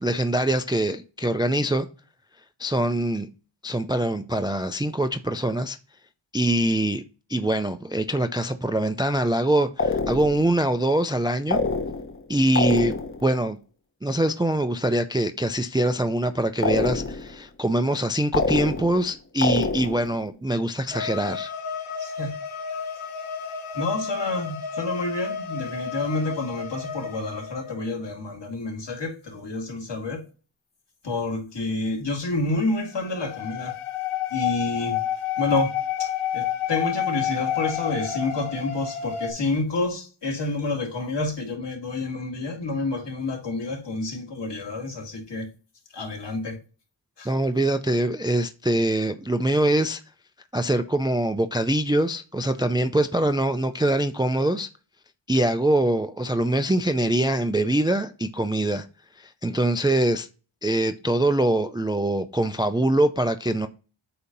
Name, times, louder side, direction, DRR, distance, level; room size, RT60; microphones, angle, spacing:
voice 1, 0.0-1.9 2.6-3.3 3.6-5.8 6.3-7.0 7.3-11.6 12.3-12.9 13.2-13.6 14.0-21.5 47.3-50.0 50.5-54.7 55.3-58.9 59.2-60.3 60.6-63.7, right 1 dB, 10° right, 0.4 m, -23 dB
sound 1, 9.8-10.5 11.5-12.2 12.6-13.3 16.6-17.4 18.3-19.1 19.4-20.1, left 3 dB, 25° left, 0.8 m, -26 dB
sound 2, 20.9-27.9 33.0-39.3, left 9 dB, 80° left, 1.8 m, -30 dB
voice 2, 22.0-22.3 23.7-30.2 31.0-33.8 34.3-35.0 35.4-35.7 36.0-45.5 45.9-46.6 47.2-47.3, left 2 dB, 60° left, 2.4 m, -29 dB
8.3 x 2.8 x 5.2 m
wide cardioid pair, 115°, 49 cm